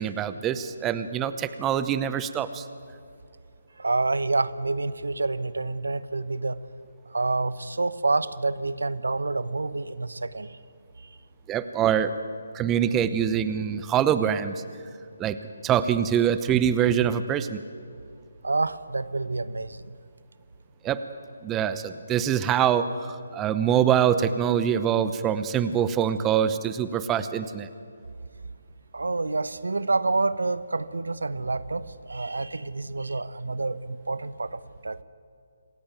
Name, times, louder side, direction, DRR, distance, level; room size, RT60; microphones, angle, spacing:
voice 1, 0.0-2.6 11.5-12.1 12.5-14.5 15.2-15.4 15.6-17.6 20.8-21.0 21.4-27.7, right 9 dB, 15° right, 13 dB, 0.8 m, -24 dB
voice 2, 3.8-6.6 7.1-10.6 18.4-19.8 28.9-35.0, right 3 dB, 70° right, 16 dB, 1.0 m, -28 dB
26.5 x 15.5 x 9.2 m, 2.4 s
figure-of-eight pair, 145°, 0 cm